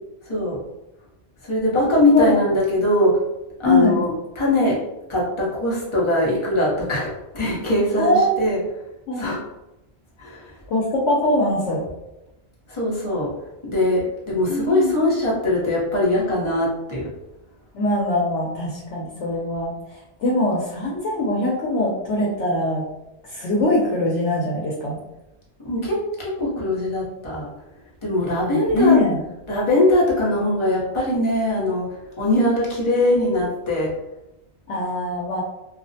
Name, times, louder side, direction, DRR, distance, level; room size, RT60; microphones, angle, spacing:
voice 1, 0.2-0.6 1.4-3.2 3.6-4.8 5.1-8.7 9.1-9.4 10.2-10.6 12.7-13.3 13.6-17.1 25.6-27.5 28.0-29.0 29.5-33.9, left 1 dB, 30° left, -6 dB, 0.7 m, -21 dB
voice 2, 3.6-4.0 8.0-8.3 9.1-9.2 10.7-11.9 14.5-14.9 17.7-22.8 23.2-25.0 28.5-29.2 34.7-35.4, left 2 dB, 80° left, -3 dB, 0.9 m, -22 dB
2.4 x 2.0 x 2.6 m, 0.96 s
omnidirectional pair, 1.2 m